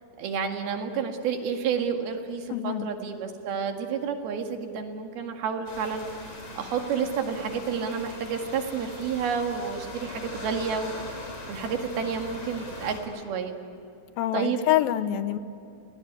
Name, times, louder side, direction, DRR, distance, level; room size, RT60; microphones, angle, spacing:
voice 1, 0.2-6.1 6.6-10.9 11.5-13.5 14.3-14.7, right 6 dB, 85° right, 4 dB, 3.9 m, -30 dB
voice 2, 2.5-2.9 14.2-15.4, left 13 dB, 80° left, 12 dB, 2.6 m, -26 dB
sound 1, 5.7-13.0, left 2 dB, 50° left, 5.8 m, -41 dB
29.5 x 19.5 x 9.7 m, 2.6 s
omnidirectional pair, 4.3 m